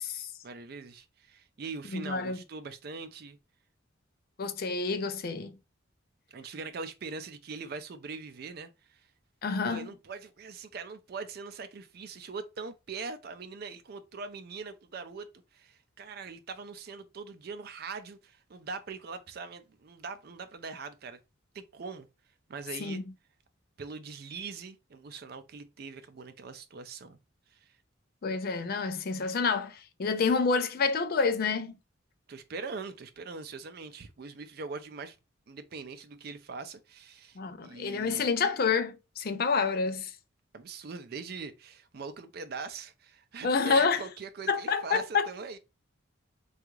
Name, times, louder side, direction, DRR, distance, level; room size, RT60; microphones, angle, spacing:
voice 1, 0.4-3.4 6.3-9.1 9.6-21.2 21.5-22.1 22.5-23.0 23.8-27.2 27.5-27.8 32.3-35.2 35.5-38.3 40.5-45.6, right 4 dB, 50° right, 0.4 m, -42 dB
voice 2, 1.9-2.4 4.4-5.5 9.4-9.9 22.8-23.0 28.2-31.7 37.4-40.1 43.4-44.0 44.5-45.3, left 5 dB, 50° left, 0.4 m, -28 dB
3.5 x 2.4 x 3.0 m
head